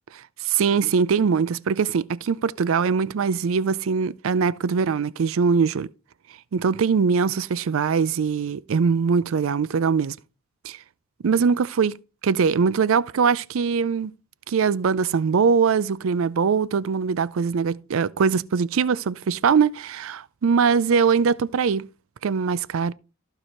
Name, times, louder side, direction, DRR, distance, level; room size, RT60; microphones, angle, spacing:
voice 1, 0.4-5.9 6.5-10.2 10.6-10.8 11.2-12.0 12.2-14.1 14.5-21.9 22.2-22.9, right 6 dB, 70° right, 0.4 m, -22 dB
14.5 x 4.8 x 4.3 m
head